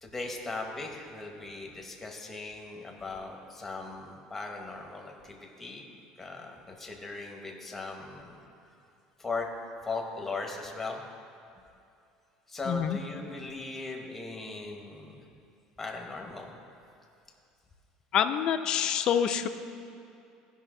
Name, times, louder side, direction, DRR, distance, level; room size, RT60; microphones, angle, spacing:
voice 1, 0.0-5.9 6.2-8.4 9.2-9.5 9.8-11.0 12.5-15.2 15.8-16.5, left 3 dB, 10° left, 1 dB, 0.9 m, -38 dB
voice 2, 12.7-13.0 18.1-19.5, left 9 dB, 40° left, 7 dB, 0.4 m, -26 dB
15.0 x 5.5 x 3.7 m, 2.6 s
cardioid pair, 165°, 2 cm